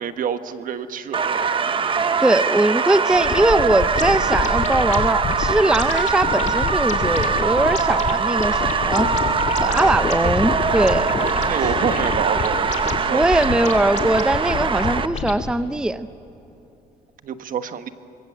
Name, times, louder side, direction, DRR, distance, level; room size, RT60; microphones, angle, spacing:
voice 1, 0.0-1.5 9.6-10.6 11.5-13.7 17.2-17.9, right 8 dB, 55° right, 10 dB, 1.3 m, -28 dB
sound 1, 1.1-15.1, right 5 dB, 30° right, 0.9 m, -22 dB
voice 2, 2.2-9.1 9.6-11.1 13.1-16.1, right 1 dB, 5° right, 12 dB, 0.6 m, -20 dB
sound 2, 3.1-15.5, left 5 dB, 45° left, 2.2 m, -28 dB
25.5 x 22.0 x 7.6 m, 2.9 s
cardioid pair, 110°, 17 cm